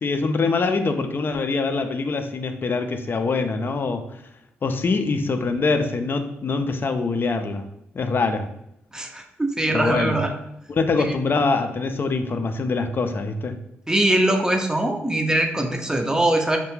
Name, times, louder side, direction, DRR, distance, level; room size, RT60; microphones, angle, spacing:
voice 1, 0.0-4.0 4.6-7.7 7.9-8.5 9.7-10.2 10.7-13.6, left 4 dB, 45° left, 7 dB, 0.3 m, -24 dB
voice 2, 8.9-10.3 11.0-11.1 13.9-16.6, right 1 dB, 15° right, 4 dB, 0.5 m, -22 dB
2.3 x 2.1 x 3.1 m, 0.79 s
hypercardioid pair, 45°, 5 cm